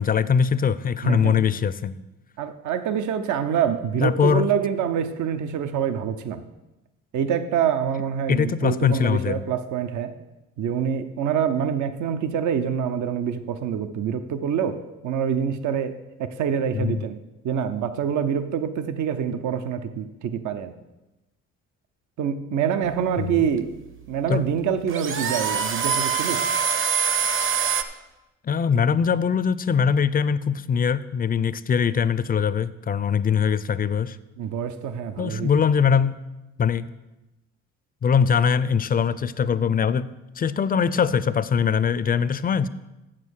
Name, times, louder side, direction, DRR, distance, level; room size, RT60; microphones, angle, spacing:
voice 1, 0.0-2.0 4.0-4.5 8.3-9.4 16.7-17.0 23.2-23.4 24.3-24.4 28.4-34.2 35.2-36.2 36.6-36.9 38.0-40.1 40.4-42.7, left 6 dB, 30° left, 16 dB, 0.4 m, -22 dB
voice 2, 1.0-1.4 2.4-6.4 7.1-10.2 10.6-17.2 17.4-20.7 22.2-23.7 24.1-26.4 34.4-35.5, right 8 dB, 75° right, 10 dB, 0.7 m, -26 dB
sound 1, 22.9-27.8, right 7 dB, 45° right, 0.8 m, -25 dB
7.5 x 7.5 x 6.3 m, 1.0 s
cardioid pair, 90°, 30 cm